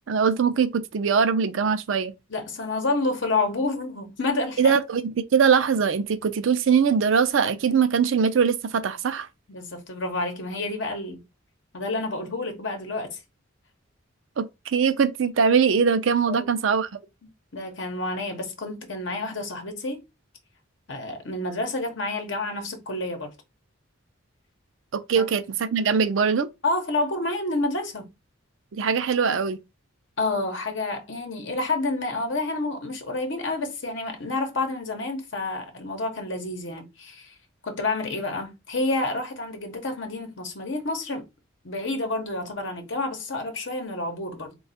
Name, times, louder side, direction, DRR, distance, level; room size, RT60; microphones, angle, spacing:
voice 1, 0.1-2.1 4.6-9.3 14.4-16.9 24.9-26.5 28.7-29.6, right 6 dB, 65° right, 0.4 m, -22 dB
voice 2, 2.3-4.7 9.5-11.3 11.7-13.2 16.3-16.5 17.5-20.0 20.9-23.3 25.1-25.3 26.6-28.1 30.2-37.3 37.6-41.3 41.6-44.6, left 2 dB, 60° left, 0.9 m, -29 dB
3.2 x 2.3 x 4.1 m
head